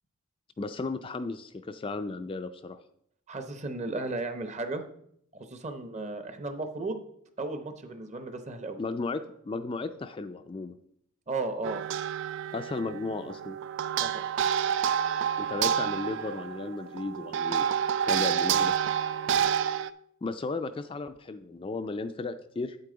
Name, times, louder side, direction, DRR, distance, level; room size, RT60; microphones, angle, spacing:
voice 1, 0.6-2.8 8.8-10.8 12.5-13.6 15.4-17.7 18.1-18.8 20.2-22.8, left 3 dB, 25° left, 8 dB, 0.3 m, -35 dB
voice 2, 3.3-4.8 5.3-7.0 7.4-8.8 11.3-11.8 14.0-14.2 19.3-19.5, right 2 dB, 35° right, 8 dB, 0.7 m, -35 dB
sound 1, 11.6-19.9, right 8 dB, 60° right, 0.3 m, -28 dB
8.3 x 8.3 x 3.8 m, 0.70 s
head